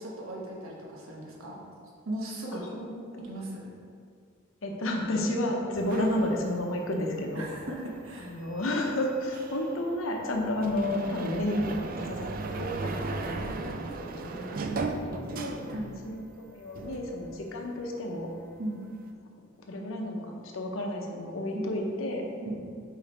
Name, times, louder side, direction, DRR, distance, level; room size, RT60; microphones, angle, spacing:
voice 1, 0.0-1.6 2.0-2.7 3.2-3.7 5.8-5.9 7.3-8.3 14.5-15.2 15.7-16.0 18.6-18.8 21.5-21.7 22.4-22.6, right 1 dB, 85° right, -3 dB, 1.1 m, -37 dB
voice 2, 2.5-3.4 4.6-7.5 8.2-14.6 14.9-15.6 16.0-16.2 16.4-18.3 19.7-22.3, left 1 dB, 75° left, 1 dB, 0.8 m, -31 dB
sound 1, 5.7-16.3 16.6-17.9, right 3 dB, 45° right, 0.4 m, -37 dB
5.0 x 4.9 x 4.2 m, 2.3 s
head